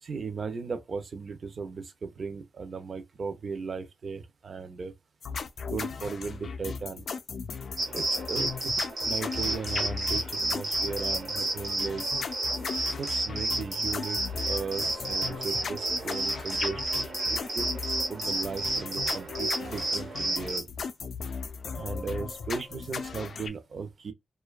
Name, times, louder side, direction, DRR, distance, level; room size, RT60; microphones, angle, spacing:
voice 1, 0.0-4.9 5.7-7.0 7.9-8.7 9.0-12.1 12.9-14.2 14.5-16.8 17.3-17.7 18.1-20.7 21.7-24.1, right 5 dB, 50° right, 0.5 m, -36 dB
sound 1, 5.2-23.5, left 5 dB, 70° left, 0.3 m, -37 dB
sound 2, 7.8-20.6, right 2 dB, 85° right, 0.9 m, -31 dB
2.5 x 2.2 x 2.3 m
wide cardioid pair, 150°, 0 cm